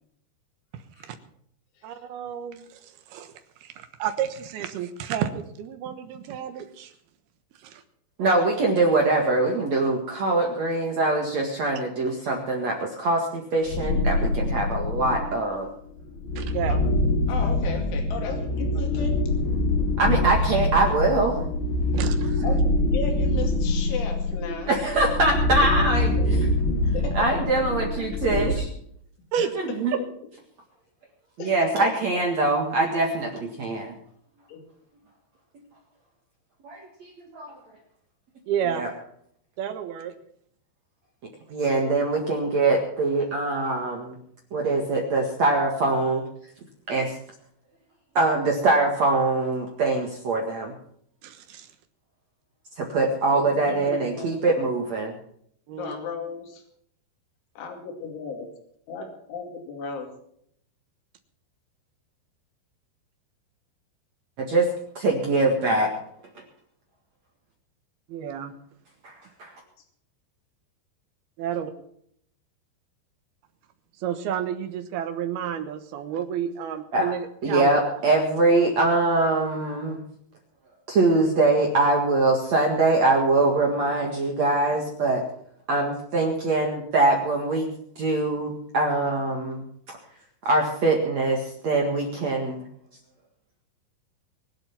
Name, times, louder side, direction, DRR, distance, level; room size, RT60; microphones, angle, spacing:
voice 1, 1.8-2.6 3.1-3.3 3.6-3.7 4.0-6.9 7.6-7.8 16.4-16.8 21.9-22.5 29.3-29.5 38.5-38.8 39.6-40.1 51.2-51.7 55.7-56.0 68.1-68.5 71.4-71.7 74.0-77.9, right 9 dB, 70° right, 8 dB, 2.9 m, -30 dB
voice 2, 8.2-15.7 20.0-21.4 24.7-26.1 27.1-28.5 29.5-30.0 31.4-33.9 36.6-37.5 38.7-38.9 41.5-44.1 44.5-46.2 46.9-47.2 48.1-50.7 52.8-55.1 64.4-64.7 65.0-65.9 69.0-69.1 69.4-69.5 76.9-77.1 77.4-80.0 80.9-85.2 85.7-87.7 88.0-89.6 90.5-92.6, right 2 dB, 50° right, 1 dB, 2.3 m, -23 dB
sound 1, 13.7-15.4 16.0-28.5, left 1 dB, 60° left, 3.8 m, -24 dB
voice 3, 16.7-19.2 22.4-24.8 26.2-26.4 26.9-27.4 29.4-29.5 31.4-31.5 31.8-32.0 33.6-33.7 34.5-34.6 53.3-54.5 55.7-56.6 57.6-58.5 58.9-60.1, left 5 dB, 85° left, 3 dB, 4.9 m, -35 dB
24.0 x 8.0 x 5.8 m, 0.67 s
omnidirectional pair, 5.4 m